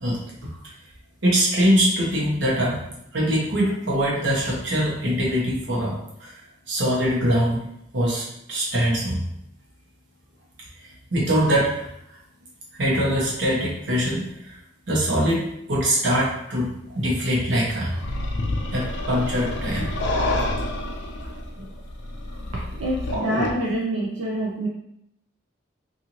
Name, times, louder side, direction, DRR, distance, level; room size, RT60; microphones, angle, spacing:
voice 1, 1.2-2.8 3.1-6.3 6.7-7.7 7.9-9.2 10.8-11.9 12.8-14.6 14.9-18.0 18.7-19.9 23.1-23.3, equal, 65° right, -5 dB, 1.0 m, -23 dB
sound 1, 18.0-23.5, left 1 dB, 60° left, 0.4 m, -28 dB
voice 2, 22.6-24.7, right 1 dB, 85° right, -5 dB, 0.6 m, -26 dB
2.6 x 2.6 x 2.9 m, 0.80 s
head